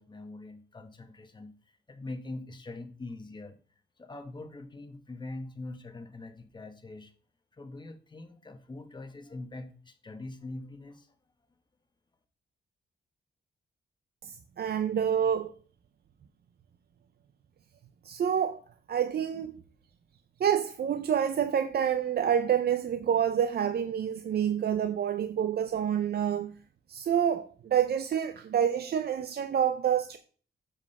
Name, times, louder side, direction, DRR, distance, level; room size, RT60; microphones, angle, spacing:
voice 1, 0.0-1.5 1.9-3.6 4.0-7.1 7.5-11.1, left 2 dB, 25° left, 1.2 m, -43 dB
voice 2, 14.6-15.5 18.0-18.6 18.9-19.6 20.4-26.5 26.9-30.2, right 9 dB, 60° right, 0.6 m, -27 dB
7.6 x 5.1 x 5.4 m
wide cardioid pair, 125°, 19 cm